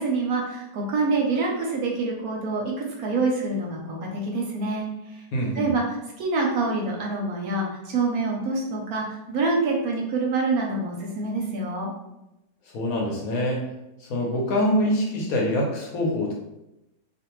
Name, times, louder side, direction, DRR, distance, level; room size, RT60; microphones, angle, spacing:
voice 1, 0.0-4.9 5.6-5.8 6.2-11.9, right 3 dB, 70° right, -1 dB, 1.0 m, -26 dB
voice 2, 5.3-5.7 12.7-13.6 14.0-16.3, left 1 dB, 65° left, -2 dB, 1.1 m, -25 dB
2.5 x 2.5 x 2.9 m, 0.91 s
omnidirectional pair, 1.8 m